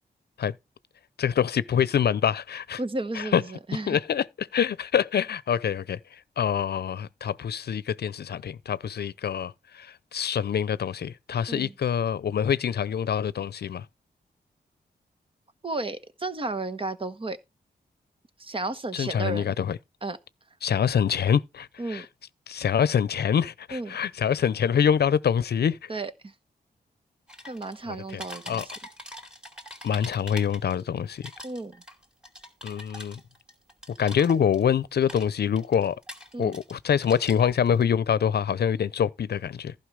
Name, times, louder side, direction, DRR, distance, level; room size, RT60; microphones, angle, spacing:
voice 1, 1.2-2.8 3.2-3.4 3.9-6.0 6.4-13.8 18.9-19.8 20.6-22.0 22.5-25.9 28.5-28.6 29.8-31.3 32.6-33.2 34.0-35.9 36.4-39.7, left 8 dB, 75° left, 0.7 m, -25 dB
voice 2, 2.8-4.0 11.5-11.7 15.6-17.4 18.4-19.5 20.0-20.2 21.8-22.1 23.7-24.0 25.9-26.3 27.4-28.7 31.4-31.8 36.3-36.6, right 2 dB, 30° right, 1.2 m, -33 dB
sound 1, 27.3-27.8 28.1-30.8 31.1-34.7 35.0-36.8 37.0-37.8, left 1 dB, 5° right, 3.0 m, -43 dB
15.0 x 5.6 x 4.8 m
wide cardioid pair, 130°, 17 cm